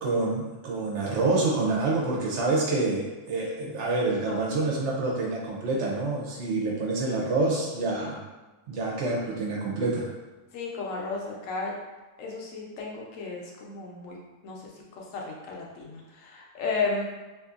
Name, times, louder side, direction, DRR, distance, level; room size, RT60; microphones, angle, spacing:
voice 1, 0.0-8.2 8.7-10.1, right 3 dB, 65° right, -3 dB, 0.8 m, -27 dB
voice 2, 10.5-11.7 12.2-14.2 14.4-17.0, left 4 dB, 70° left, -2 dB, 0.9 m, -34 dB
2.6 x 2.6 x 2.4 m, 1.2 s
omnidirectional pair, 1.4 m